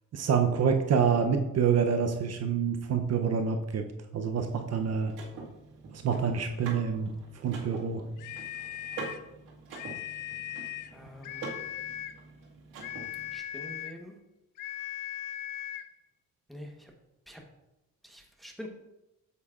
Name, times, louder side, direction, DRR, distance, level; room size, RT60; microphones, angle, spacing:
voice 1, 0.1-3.8 4.1-5.1 5.9-7.1 7.4-8.0, right 6 dB, 55° right, 5 dB, 0.7 m, -27 dB
Car / Mechanisms, 4.4-13.4, right 4 dB, 85° right, 1.9 m, -45 dB
sound 1, 8.2-9.3 9.7-11.0 11.2-12.2 12.8-14.0 14.6-15.9, left 13 dB, 75° left, 0.5 m, -39 dB
voice 2, 10.9-11.5 13.3-14.2 16.5-16.9 17.3-17.4 18.0-18.7, equal, ahead, 1 dB, 1.1 m, -45 dB
8.0 x 7.4 x 2.4 m, 0.95 s
cardioid pair, 115°, 32 cm